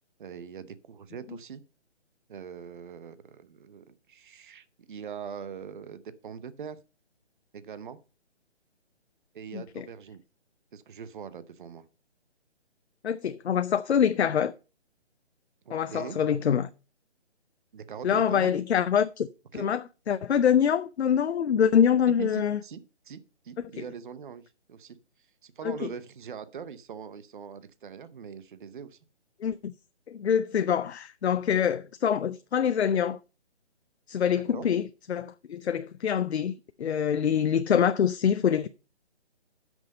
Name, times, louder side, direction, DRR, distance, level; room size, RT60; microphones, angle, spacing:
voice 1, 0.2-1.6 2.3-6.8 7.5-8.0 9.3-10.2 10.7-11.8 15.6-16.2 17.7-18.5 19.5-19.7 22.2-22.8 23.1-23.2 23.4-25.0 25.4-29.0 34.5-34.7, right 7 dB, 45° right, 0.8 m, -42 dB
voice 2, 9.5-9.9 13.0-14.5 15.7-16.7 18.0-22.6 23.8-23.9 25.6-25.9 29.4-29.7 30.1-33.2 34.1-38.7, left 8 dB, 70° left, 0.6 m, -25 dB
10.5 x 6.3 x 5.3 m
hypercardioid pair, 155°, 34 cm